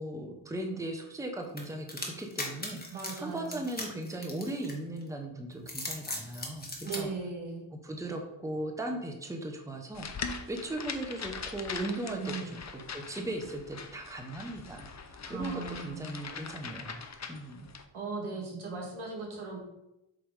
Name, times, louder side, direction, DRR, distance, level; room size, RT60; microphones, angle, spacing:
voice 1, 0.0-7.1 7.7-17.0 17.3-17.7, right 1 dB, 5° right, 3 dB, 0.8 m, -38 dB
sound 1, 1.6-5.0 5.5-7.0, left 1 dB, 20° left, 1.4 m, -38 dB
voice 2, 2.9-3.6 6.8-7.6 12.1-12.5 15.3-16.1 17.9-19.6, right 4 dB, 85° right, -1 dB, 1.9 m, -38 dB
sound 2, 9.9-17.8, left 5 dB, 35° left, 0.6 m, -42 dB
7.5 x 3.4 x 4.8 m, 0.90 s
wide cardioid pair, 110°, 47 cm